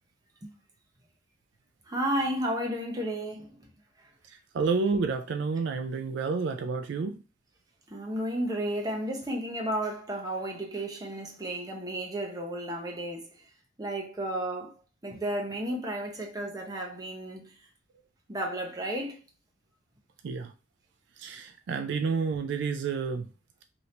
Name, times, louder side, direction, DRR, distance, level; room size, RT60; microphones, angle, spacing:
voice 1, 1.9-3.7 7.9-13.5 13.8-14.7 15.0-17.5 18.3-19.2, right 1 dB, 20° right, 0.7 m, -33 dB
voice 2, 4.5-7.2 20.2-20.5 21.2-23.3, right 4 dB, 65° right, 0.3 m, -29 dB
2.8 x 2.6 x 3.2 m
head